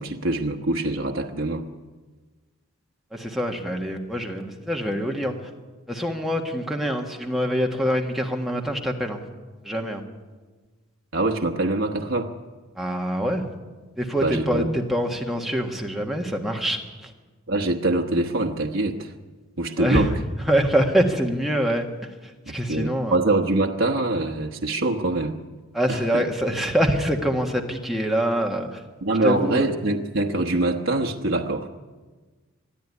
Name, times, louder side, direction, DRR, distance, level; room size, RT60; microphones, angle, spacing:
voice 1, 0.0-1.6 11.1-12.3 14.2-14.7 17.5-19.1 19.6-20.1 22.5-25.3 25.9-26.2 29.0-31.7, right 2 dB, 60° right, 2 dB, 1.2 m, -24 dB
voice 2, 3.1-5.3 5.9-9.2 9.6-10.0 12.8-13.5 14.0-17.1 19.8-20.1 20.5-21.9 22.5-23.2 25.7-28.8 29.2-29.7, equal, ahead, 1 dB, 1.5 m, -25 dB
21.0 x 13.0 x 9.6 m, 1.3 s
head